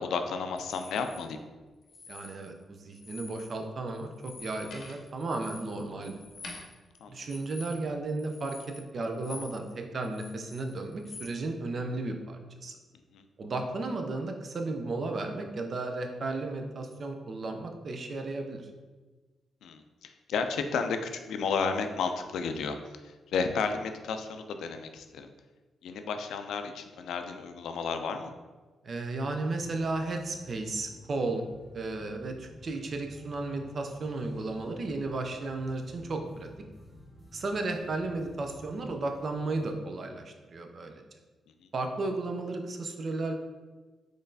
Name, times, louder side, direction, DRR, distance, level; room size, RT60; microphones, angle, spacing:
voice 1, 0.0-1.4 7.0-7.3 13.1-13.2 19.6-22.8 23.3-25.3 25.8-28.3, left 5 dB, 85° left, 7 dB, 0.3 m, -32 dB
sound 1, 0.6-1.2 1.8-2.6 2.9-3.6 3.9-9.7 10.0-11.3, left 3 dB, 55° left, 0.7 m, -47 dB
voice 2, 2.1-6.2 7.1-12.8 13.4-18.7 28.8-31.5 31.7-36.5 37.3-41.0 41.7-43.3, right 2 dB, 45° right, 4 dB, 0.4 m, -34 dB
sound 2, 29.5-39.7, left 1 dB, 10° left, 0.7 m, -53 dB
4.0 x 3.2 x 2.6 m, 1.3 s
cardioid pair, 125°, 0 cm